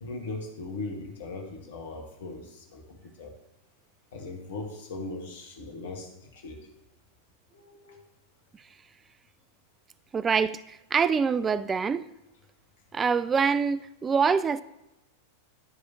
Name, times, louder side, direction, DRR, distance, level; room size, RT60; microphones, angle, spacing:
voice 1, 0.0-3.3 4.1-6.7 7.5-8.0, left 3 dB, 60° left, 1.5 m, -39 dB
voice 2, 10.1-12.0 12.9-14.6, right 5 dB, 20° right, 0.3 m, -25 dB
12.5 x 4.9 x 2.9 m
figure-of-eight pair, 90°, 0 cm